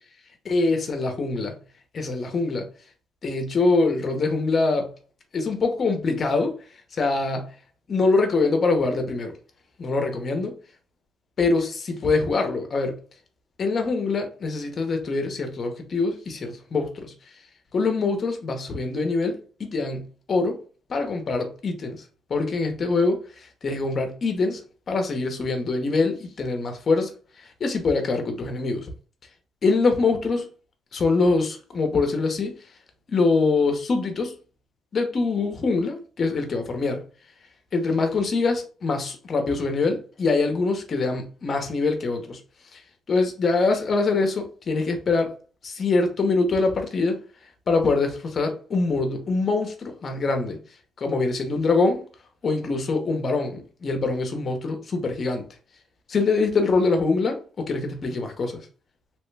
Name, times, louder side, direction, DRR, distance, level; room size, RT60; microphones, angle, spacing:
voice 1, 0.5-1.6 1.9-2.7 3.2-4.9 5.3-6.6 6.9-7.5 7.9-9.3 9.8-10.6 11.4-13.0 13.6-17.1 17.7-20.6 20.9-22.0 22.3-24.6 24.9-27.1 27.6-28.9 29.6-30.5 30.9-32.6 33.1-34.3 34.9-37.0 37.7-42.4 42.7-42.8 43.1-45.3 45.6-47.2 47.7-50.6 51.0-52.0 52.4-55.5 56.1-58.6, left 3 dB, 50° left, 0.8 m, -24 dB
3.0 x 2.2 x 3.2 m
cardioid pair, 90°, 0 cm